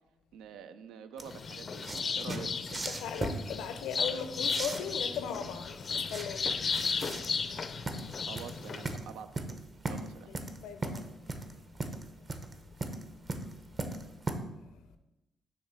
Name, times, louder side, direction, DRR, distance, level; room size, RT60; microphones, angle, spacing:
voice 1, 0.3-1.8 2.1-2.5 8.2-9.6 9.9-10.3, right 7 dB, 90° right, 0.4 m, -46 dB
sound 1, 1.2-9.0, left 5 dB, 40° left, 0.4 m, -35 dB
sound 2, 1.2-14.3, right 2 dB, 30° right, 0.7 m, -39 dB
voice 2, 2.9-8.2 10.3-11.1 11.6-11.7 12.6-12.7 13.9-14.0 14.6-14.8, left 7 dB, 90° left, 0.6 m, -40 dB
6.7 x 3.2 x 5.9 m
cardioid pair, 90°, 0 cm